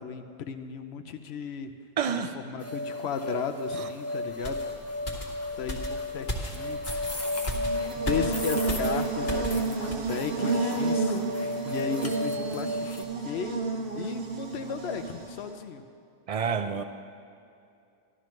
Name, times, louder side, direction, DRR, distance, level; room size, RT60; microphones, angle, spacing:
voice 1, 0.0-1.7 2.3-4.6 5.6-7.1 7.7-13.6 14.0-15.8, left 7 dB, 75° left, 8 dB, 0.9 m, -35 dB
voice 2, 2.0-2.4 3.8-3.9 16.3-16.8, right 6 dB, 55° right, 8 dB, 0.4 m, -28 dB
sound 1, 2.6-13.0, left 1 dB, 15° left, 0.8 m, -34 dB
sound 2, 4.4-9.6 9.9-10.1, equal, 50° left, 1.5 m, -36 dB
Buzz, 7.4-15.6, right 4 dB, 70° right, 1.1 m, -31 dB
13.5 x 12.0 x 3.1 m, 2.5 s
omnidirectional pair, 1.1 m